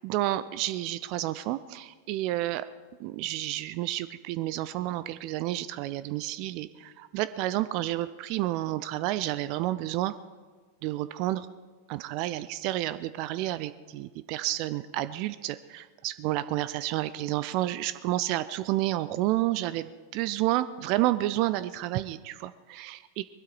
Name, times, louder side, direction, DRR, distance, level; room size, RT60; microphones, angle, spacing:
voice 1, 0.0-2.7 3.0-10.1 10.8-11.5 11.9-23.2, right 15 dB, 45° right, 14 dB, 0.5 m, -30 dB
21.5 x 12.0 x 4.7 m, 1.4 s
figure-of-eight pair, 90°, 0 cm